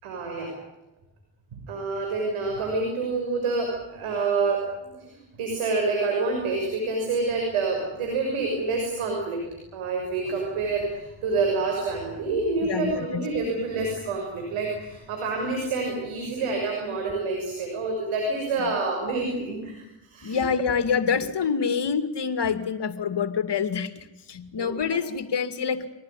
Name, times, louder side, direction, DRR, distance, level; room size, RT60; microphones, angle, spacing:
voice 1, 0.0-0.5 1.5-5.1 5.4-9.4 9.7-20.4 24.6-24.8, right 3 dB, 90° right, 1 dB, 6.5 m, -27 dB
voice 2, 12.6-13.2 15.8-15.9 18.6-18.7 20.2-25.9, left 6 dB, 55° left, 10 dB, 2.5 m, -27 dB
25.5 x 19.0 x 10.0 m, 0.98 s
supercardioid pair, 60°, 49 cm